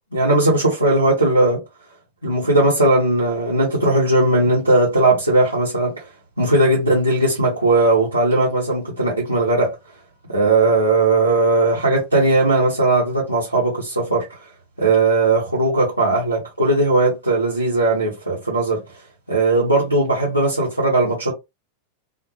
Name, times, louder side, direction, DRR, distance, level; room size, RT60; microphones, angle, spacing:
voice 1, 0.1-1.6 2.2-5.9 6.4-9.7 10.3-14.2 14.8-18.8 19.3-21.3, right 2 dB, 85° right, 0.9 m, -18 dB
2.2 x 2.2 x 2.8 m
figure-of-eight pair, 90°, 0 cm